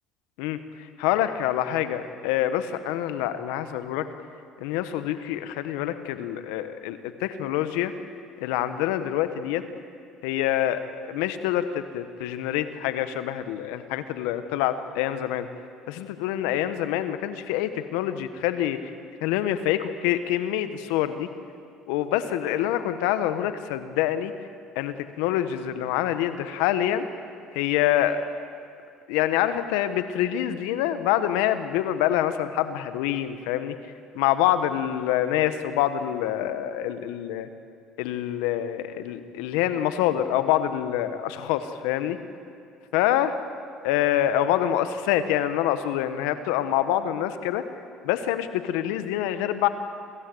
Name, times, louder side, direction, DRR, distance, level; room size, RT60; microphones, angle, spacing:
voice 1, 1.0-4.1 4.6-7.9 8.4-9.6 10.2-15.5 15.9-18.9 19.2-21.3 21.9-24.3 24.7-27.1 27.5-28.2 29.1-33.8 34.1-37.5 38.0-42.2 42.9-43.3 43.8-47.7 48.0-49.7, left 12 dB, 85° left, 11 dB, 1.3 m, -26 dB
26.5 x 16.0 x 7.9 m, 2.3 s
supercardioid pair, 85°, 0 cm